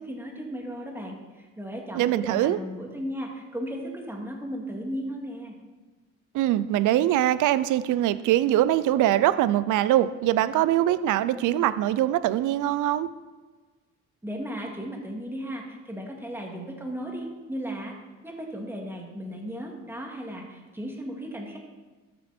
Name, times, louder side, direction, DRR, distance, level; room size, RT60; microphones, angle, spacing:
voice 1, 0.0-5.5 14.2-17.9 18.2-21.6, equal, 5° right, 0 dB, 2.5 m, -35 dB
voice 2, 1.9-2.6 6.3-13.1, right 13 dB, 85° right, 15 dB, 0.6 m, -23 dB
13.5 x 7.8 x 4.4 m, 1.3 s
cardioid pair, 90°, 30 cm